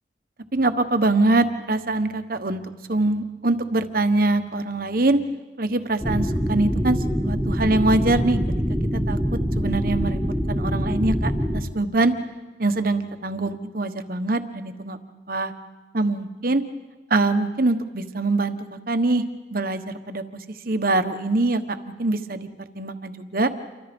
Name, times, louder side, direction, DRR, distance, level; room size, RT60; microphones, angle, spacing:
voice 1, 0.5-2.6 2.9-5.2 5.6-7.0 7.2-8.4 9.1-9.2 9.5-10.2 10.5-12.1 12.6-15.0 15.3-15.5 15.9-16.6 17.1-19.2 19.5-20.2 20.6-22.5 22.7-23.5, right 2 dB, 50° right, 9 dB, 1.3 m, -23 dB
sound 1, 6.0-11.6, equal, ahead, 1.9 m, -24 dB
29.0 x 24.5 x 5.3 m, 1.2 s
head